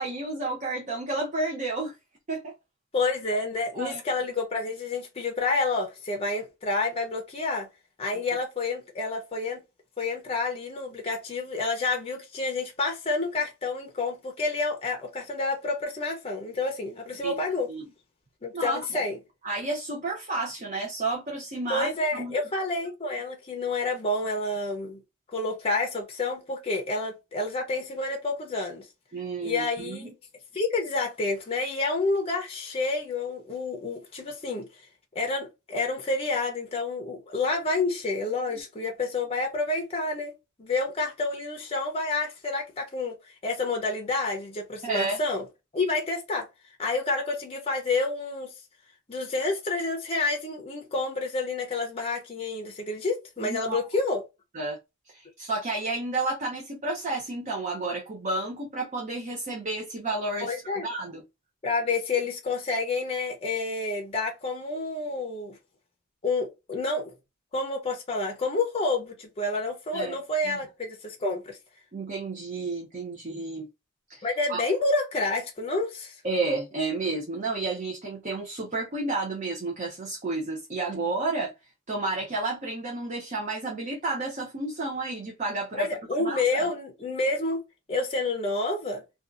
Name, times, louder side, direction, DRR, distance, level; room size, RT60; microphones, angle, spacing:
voice 1, 0.0-1.9 2.3-2.5 3.8-4.0 17.2-17.4 17.7-17.8 18.5-19.0 19.4-22.4 29.1-30.1 44.8-45.2 53.4-53.8 54.5-54.8 55.1-61.2 69.9-70.2 70.4-70.6 71.9-73.7 74.1-74.6 76.2-81.5 81.9-85.9 86.2-86.7, right 2 dB, 35° right, 0.6 m, -31 dB
voice 2, 2.9-7.7 8.0-9.6 10.0-17.7 18.4-19.2 21.7-25.0 25.3-28.9 29.4-30.1 30.5-34.7 35.1-40.3 40.6-43.2 43.4-45.4 45.7-46.5 46.8-48.5 49.1-54.2 60.4-60.9 61.6-65.5 66.2-67.1 67.5-71.6 74.2-76.1 85.7-87.6 87.9-89.0, left 3 dB, 30° left, 0.6 m, -29 dB
2.6 x 2.3 x 2.4 m
head